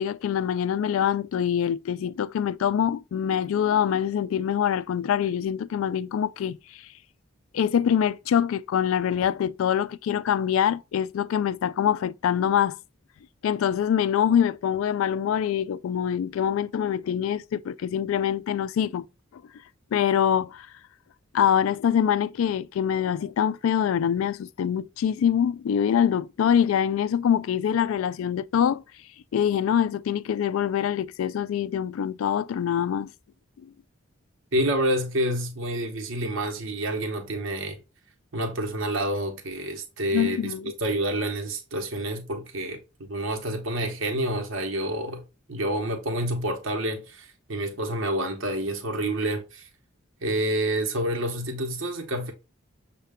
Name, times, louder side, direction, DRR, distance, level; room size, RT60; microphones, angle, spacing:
voice 1, 0.0-6.6 7.5-12.8 13.4-19.0 19.9-20.7 21.3-28.8 29.3-33.1 40.1-40.7, left 8 dB, 85° left, 0.3 m, -24 dB
voice 2, 34.5-37.8 38.3-45.2 45.5-49.7 50.2-52.3, right 1 dB, 70° right, 0.9 m, -28 dB
6.5 x 2.3 x 3.5 m
head